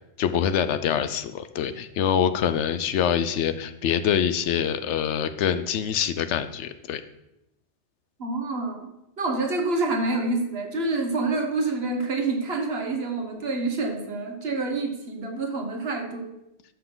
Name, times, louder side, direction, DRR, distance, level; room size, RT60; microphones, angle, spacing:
voice 1, 0.2-7.0, left 8 dB, 90° left, 11 dB, 0.9 m, -25 dB
voice 2, 8.2-8.9 9.2-16.3, right 3 dB, 60° right, 4 dB, 1.4 m, -27 dB
12.0 x 5.8 x 3.9 m, 0.87 s
omnidirectional pair, 1.2 m